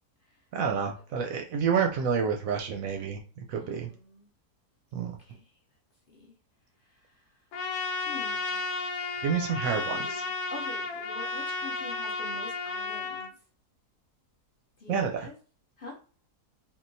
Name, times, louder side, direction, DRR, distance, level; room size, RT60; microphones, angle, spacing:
voice 1, 0.5-3.9 4.9-5.2 9.2-10.2 14.9-15.3, right 6 dB, 70° right, 0.9 m, -29 dB
voice 2, 3.5-4.3 5.2-5.6 6.1-6.3 6.8-7.5 8.0-8.6 9.7-13.4 14.8-15.3 15.8-16.0, left 2 dB, 50° left, 0.7 m, -46 dB
Trumpet, 7.5-13.3, left 3 dB, 90° left, 1.2 m, -33 dB
3.6 x 2.4 x 2.6 m
omnidirectional pair, 1.7 m